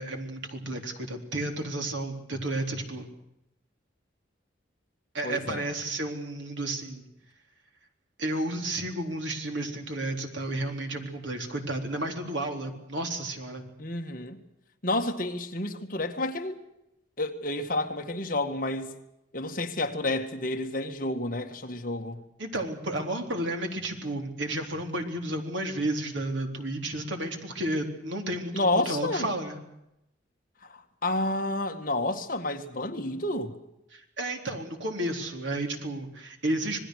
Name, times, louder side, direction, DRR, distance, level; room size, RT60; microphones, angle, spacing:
voice 1, 0.0-3.1 5.1-7.0 8.2-13.7 22.4-29.6 33.9-36.8, right 1 dB, 70° right, 4.0 m, -32 dB
voice 2, 5.2-5.6 13.8-14.4 14.8-16.6 17.2-18.9 19.3-22.2 28.5-29.3 30.7-33.6, left 2 dB, 45° left, 1.9 m, -30 dB
26.5 x 20.5 x 6.6 m
head